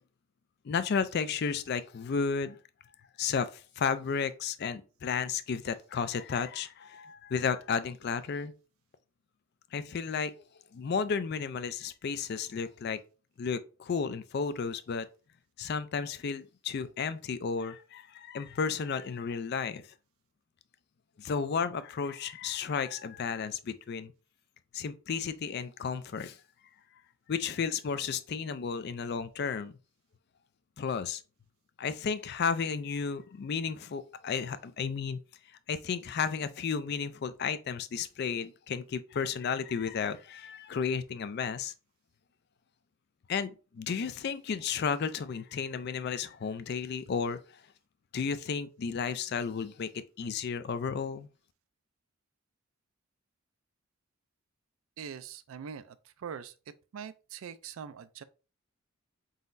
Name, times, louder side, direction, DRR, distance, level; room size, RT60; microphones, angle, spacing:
voice 1, 0.6-2.6 3.2-8.5 9.7-10.3 10.7-13.0 13.4-15.1 15.6-19.9 21.2-24.1 24.7-26.4 27.3-29.7 30.8-31.2 31.8-35.2 35.7-41.7 43.3-47.4 48.1-51.3, left 6 dB, 50° left, 0.3 m, -33 dB
voice 2, 55.0-56.5 56.9-58.2, right 7 dB, 70° right, 0.4 m, -43 dB
4.0 x 3.9 x 2.5 m
head